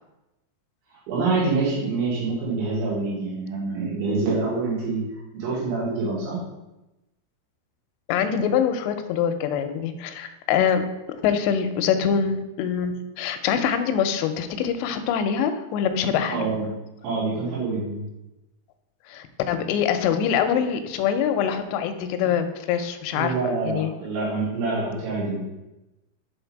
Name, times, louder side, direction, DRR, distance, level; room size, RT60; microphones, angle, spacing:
voice 1, 1.1-5.0 5.3-6.4 16.3-16.7 17.0-18.1 23.1-25.5, right 3 dB, 80° right, -7 dB, 4.1 m, -26 dB
voice 2, 8.1-10.8 11.1-16.5 19.1-23.4 23.7-23.9, left 8 dB, 85° left, 8 dB, 2.6 m, -24 dB
7.9 x 3.9 x 4.6 m, 0.96 s
omnidirectional pair, 5.3 m